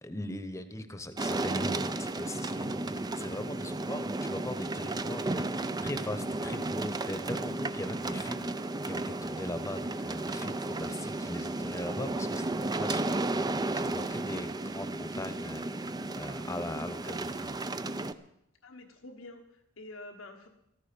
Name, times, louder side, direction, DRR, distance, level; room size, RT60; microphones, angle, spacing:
voice 1, 0.0-13.2 13.6-17.6, left 1 dB, 15° left, 10 dB, 1.0 m, -40 dB
sound 1, 1.2-18.1, right 2 dB, 20° right, 0.5 m, -33 dB
voice 2, 18.6-20.5, left 2 dB, 90° left, 4 dB, 1.4 m, -47 dB
14.5 x 13.5 x 5.3 m, 0.80 s
head